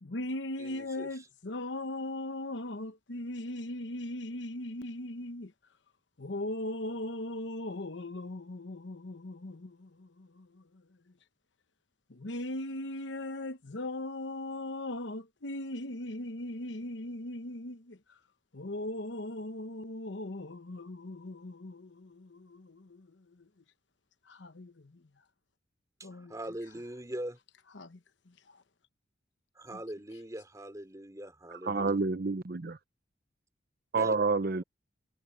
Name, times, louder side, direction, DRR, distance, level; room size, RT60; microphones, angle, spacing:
voice 1, 0.0-5.5 6.2-10.9 12.1-18.2 18.5-23.5 24.3-25.0 26.0-26.3 27.7-28.0 28.3-28.6 29.7-29.8, left 1 dB, 70° left, 1.0 m, -39 dB
voice 2, 0.6-1.1 26.0-27.4 29.5-31.9 34.0-34.2, right 1 dB, 20° right, 3.1 m, -42 dB
voice 3, 31.5-32.8 33.9-34.6, right 4 dB, 50° right, 0.7 m, -29 dB
head